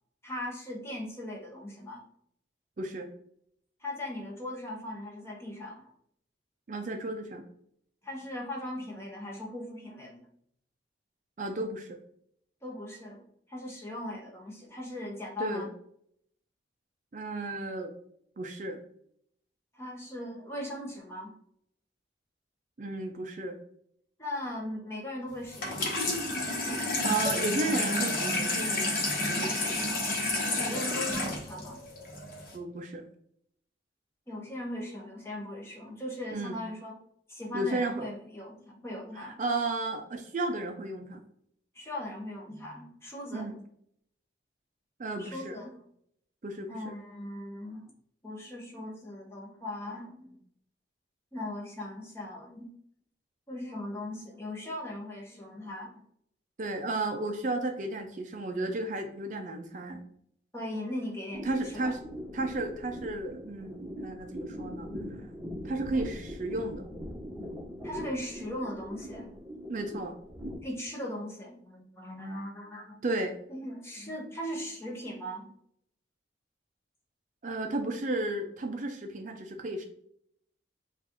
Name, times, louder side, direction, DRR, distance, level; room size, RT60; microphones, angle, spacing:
voice 1, 0.2-2.1 3.8-5.9 8.0-10.2 12.6-13.2 13.5-15.7 19.7-21.3 24.2-26.2 30.5-31.8 34.3-37.0 37.3-39.4 41.7-43.5 45.2-45.8 46.7-47.8 48.2-50.4 51.3-52.7 53.5-56.0 60.5-61.9 67.8-69.4 70.6-73.0 73.5-75.5, left 1 dB, 15° left, -2 dB, 0.9 m, -39 dB
voice 2, 2.8-3.1 6.7-7.4 11.4-12.0 15.4-15.7 17.1-17.9 18.4-18.8 22.8-23.6 26.8-28.9 29.3-29.9 32.5-33.0 36.3-36.6 37.5-38.1 39.1-41.2 43.3-43.6 45.0-45.6 46.4-47.0 56.6-60.0 61.4-62.0 62.3-64.9 65.6-66.9 69.7-70.1 73.0-73.3 77.4-79.8, right 2 dB, 40° right, 4 dB, 0.4 m, -33 dB
Water tap faucet / Sink (filling or washing), 25.5-32.5, left 2 dB, 50° left, 1.0 m, -30 dB
sound 1, 61.3-70.6, equal, 10° right, 1.1 m, -41 dB
5.9 x 2.4 x 2.9 m, 0.68 s
head